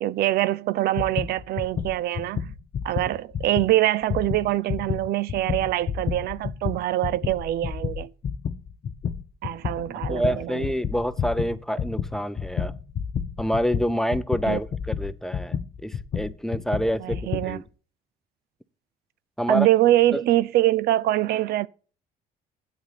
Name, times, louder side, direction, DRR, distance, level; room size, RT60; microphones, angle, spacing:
voice 1, 0.0-2.5 2.8-8.1 9.4-10.6 14.5-14.6 17.0-17.6 19.5-21.7, right 15 dB, 70° right, 0.5 m, -24 dB
sound 1, 1.0-3.7 4.0-17.5, left 7 dB, 45° left, 0.9 m, -30 dB
voice 2, 10.1-12.7 13.4-15.6 15.8-17.6 19.4-19.7 20.1-20.2, equal, 5° left, 0.6 m, -27 dB
9.4 x 8.3 x 4.1 m
cardioid pair, 110°, 17 cm